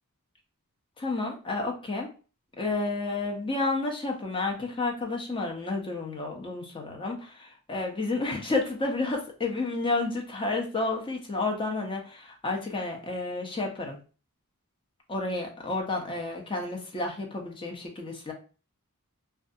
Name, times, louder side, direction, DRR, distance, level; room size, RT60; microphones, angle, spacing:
voice 1, 1.0-2.1 2.6-14.0 15.1-18.3, left 3 dB, 25° left, 1 dB, 0.6 m, -31 dB
2.5 x 2.3 x 2.5 m, 0.36 s
head